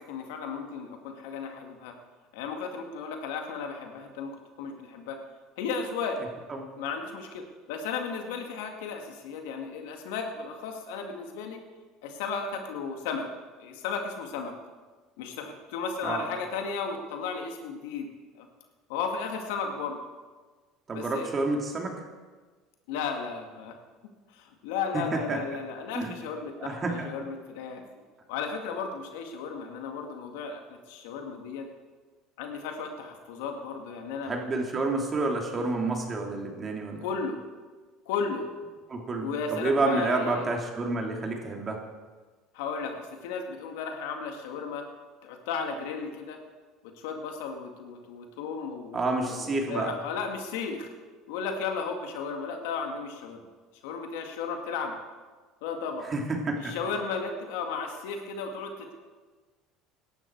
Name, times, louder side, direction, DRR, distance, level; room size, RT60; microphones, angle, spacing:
voice 1, 0.0-2.0 2.3-5.2 5.6-6.2 6.8-11.6 12.0-13.3 13.6-14.5 15.2-18.1 18.4-18.5 18.9-20.0 20.9-21.3 22.9-23.8 24.3-27.8 28.3-31.7 32.4-34.4 37.0-37.4 38.1-38.4 39.2-40.5 42.5-44.9 45.2-46.4 46.8-50.9 51.3-53.5 53.8-54.9 55.6-56.1 56.6-58.9, left 5 dB, 80° left, 4 dB, 2.1 m, -34 dB
voice 2, 20.9-22.0 24.9-25.4 25.9-26.1 26.6-27.1 34.2-37.0 38.9-41.8 48.9-49.9 56.1-56.8, right 3 dB, 30° right, 1 dB, 3.1 m, -29 dB
17.5 x 11.5 x 4.7 m, 1.4 s
supercardioid pair, 85°, 0 cm